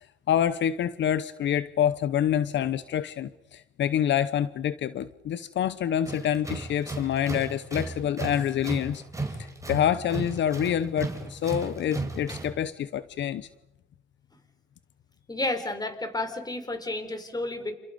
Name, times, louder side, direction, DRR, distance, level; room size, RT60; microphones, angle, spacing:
voice 1, 0.3-9.0 9.7-13.5, left 10 dB, 65° left, 15 dB, 0.8 m, -27 dB
Tools, 6.0-12.6, right 3 dB, 15° right, 4.9 m, -35 dB
voice 2, 15.3-17.7, left 2 dB, 20° left, 8 dB, 4.4 m, -31 dB
29.0 x 29.0 x 5.3 m, 0.92 s
cardioid pair, 90°, 20 cm